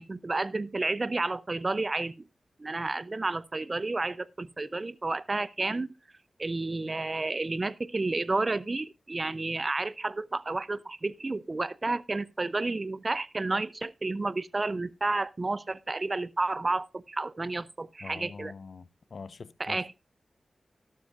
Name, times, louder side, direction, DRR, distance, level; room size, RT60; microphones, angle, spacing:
voice 1, 0.0-2.3 2.6-5.9 6.4-18.5 19.6-20.0, right 3 dB, 40° right, 0.6 m, -31 dB
voice 2, 18.0-20.0, left 4 dB, 70° left, 0.6 m, -44 dB
12.5 x 12.0 x 2.5 m
cardioid pair, 50°, 0 cm